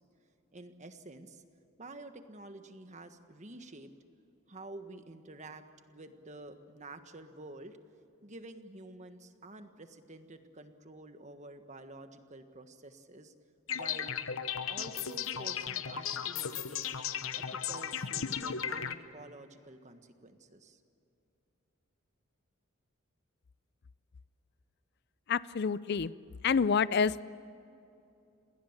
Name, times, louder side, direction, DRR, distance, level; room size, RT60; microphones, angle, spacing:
voice 1, 0.5-1.4 1.8-3.9 4.5-7.8 8.2-13.3 13.7-14.2 14.7-16.9 17.3-20.8, right 2 dB, 35° right, 8 dB, 1.5 m, -49 dB
sound 1, 13.7-19.0, left 8 dB, 75° left, 1.0 m, -36 dB
voice 2, 25.3-26.1 26.4-27.2, left 6 dB, 50° left, 17 dB, 0.5 m, -28 dB
28.5 x 20.0 x 7.4 m, 2.7 s
head